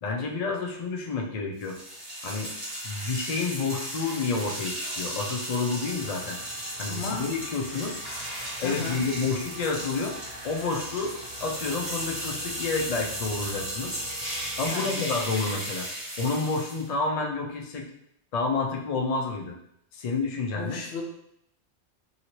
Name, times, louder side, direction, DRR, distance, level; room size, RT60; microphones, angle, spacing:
voice 1, 0.0-1.8 2.2-2.5 2.8-6.4 6.8-8.0 8.6-10.2 10.4-11.1 11.4-14.0 14.6-15.9 16.2-17.9 18.3-19.5 19.9-20.8, left 4 dB, 50° left, 0 dB, 0.5 m, -29 dB
sound 1, 1.6-16.9, equal, 30° right, 1.6 m, -36 dB
sound 2, 5.8-14.7, right 1 dB, 55° right, 0.8 m, -46 dB
voice 2, 6.9-7.3 8.6-9.1 14.7-15.1 20.5-21.0, left 4 dB, 70° left, 1 dB, 0.8 m, -34 dB
2.9 x 2.8 x 2.9 m, 0.75 s
omnidirectional pair, 1.2 m